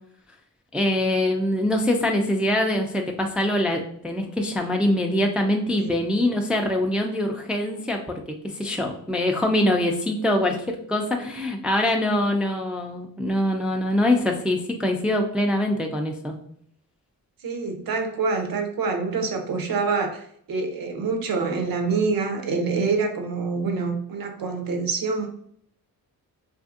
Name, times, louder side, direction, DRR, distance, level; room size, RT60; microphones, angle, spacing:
voice 1, 0.7-16.3, left 1 dB, 5° right, 2 dB, 0.4 m, -24 dB
voice 2, 17.4-20.2 20.5-25.3, right 4 dB, 60° right, 5 dB, 0.7 m, -26 dB
2.6 x 2.5 x 2.4 m, 0.65 s
cardioid pair, 50°, 39 cm